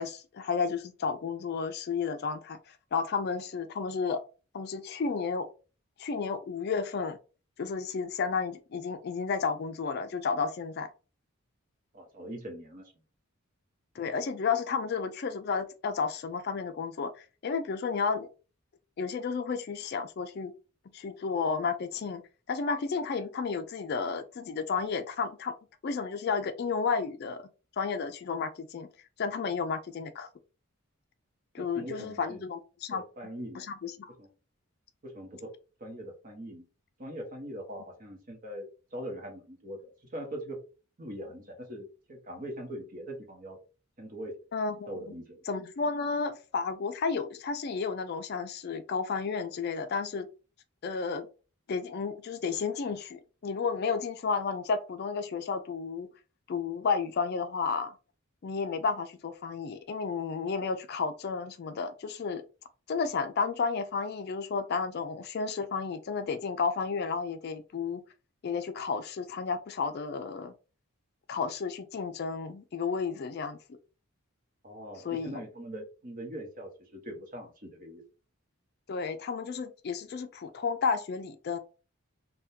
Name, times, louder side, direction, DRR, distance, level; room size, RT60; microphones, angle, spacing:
voice 1, 0.0-2.6 2.9-4.2 4.5-5.5 6.0-7.2 7.6-10.9 14.0-18.3 19.0-20.5 20.9-22.2 22.5-25.5 25.8-27.5 27.8-28.9 29.2-30.3 31.5-33.0 33.6-34.1 44.5-45.1 45.5-50.3 50.8-51.3 51.7-56.1 56.5-58.0 58.4-62.4 62.9-68.0 68.4-70.5 71.3-73.6 75.0-75.4 78.9-81.6, left 5 dB, 50° left, 9 dB, 0.3 m, -32 dB
voice 2, 11.9-12.9 31.6-32.4 32.9-33.7 34.2-34.3 35.0-35.5 35.8-36.7 37.0-40.6 41.0-43.6 44.0-44.3 44.9-45.4 74.6-78.0, equal, 40° right, 1 dB, 1.0 m, -42 dB
3.5 x 2.2 x 2.7 m, 0.34 s
head